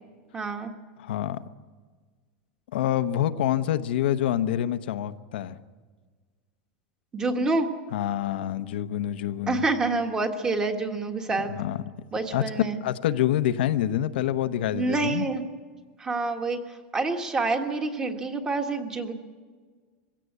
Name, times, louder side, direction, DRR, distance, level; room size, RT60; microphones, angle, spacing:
voice 1, 0.3-0.7 7.1-7.7 9.5-11.5 12.1-12.8 14.7-15.4 16.0-16.6 16.9-19.1, right 3 dB, 15° right, 5 dB, 1.5 m, -27 dB
voice 2, 1.0-1.4 2.7-5.6 7.9-9.6 11.3-11.8 12.3-12.4 12.8-15.3, left 11 dB, 80° left, 10 dB, 1.0 m, -27 dB
22.5 x 16.5 x 8.2 m, 1.5 s
supercardioid pair, 170°, 5 cm